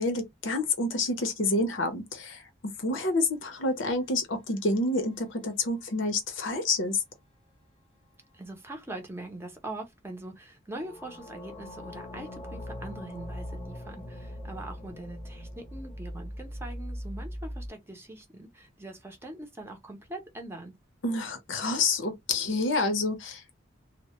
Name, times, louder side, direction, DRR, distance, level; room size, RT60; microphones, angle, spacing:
voice 1, 0.0-2.4 2.8-7.0 21.0-23.6, left 2 dB, 85° left, 0.7 m, -28 dB
sound 1, 4.3-5.6 10.7-17.7, equal, 30° left, 0.6 m, -41 dB
voice 2, 8.3-20.7, right 2 dB, 15° right, 0.6 m, -42 dB
2.1 x 2.0 x 2.9 m
head